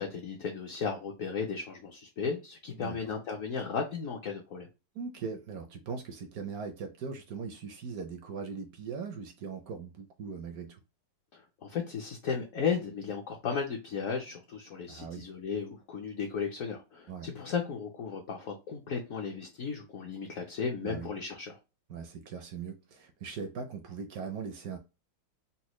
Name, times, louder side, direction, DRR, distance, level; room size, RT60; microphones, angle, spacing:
voice 1, 0.0-4.7 11.3-21.6, left 6 dB, 65° left, 0.8 m, -35 dB
voice 2, 2.7-3.1 4.9-10.8 14.9-15.3 17.1-17.3 20.8-21.1 21.9-24.8, right 5 dB, 70° right, 0.9 m, -40 dB
4.1 x 2.2 x 3.0 m
omnidirectional pair, 2.0 m